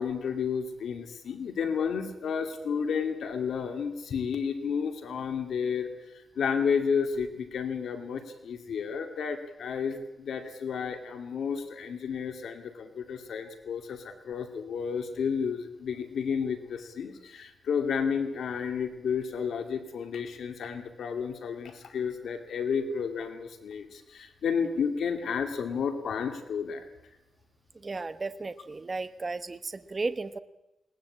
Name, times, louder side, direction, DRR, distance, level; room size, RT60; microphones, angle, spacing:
voice 1, 0.0-26.9, left 6 dB, 80° left, 6 dB, 2.4 m, -31 dB
voice 2, 27.8-30.4, right 3 dB, 25° right, 10 dB, 1.1 m, -34 dB
21.0 x 19.5 x 8.6 m, 0.92 s
wide cardioid pair, 140°, 0 cm